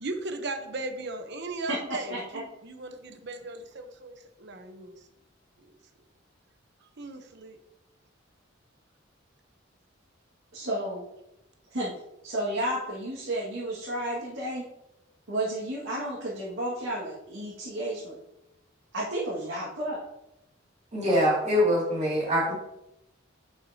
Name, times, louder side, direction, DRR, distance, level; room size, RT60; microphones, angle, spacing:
voice 1, 0.0-4.9 5.6-5.7 7.0-7.6, right 2 dB, 60° right, 7 dB, 0.9 m, -37 dB
voice 2, 2.1-2.4 10.5-11.0 11.7-11.9 12.2-14.6 15.3-18.2 18.9-20.0, right 1 dB, 75° right, -8 dB, 1.9 m, -32 dB
voice 3, 20.9-22.5, equal, 35° right, -4 dB, 2.5 m, -24 dB
9.6 x 5.8 x 2.8 m, 0.87 s
head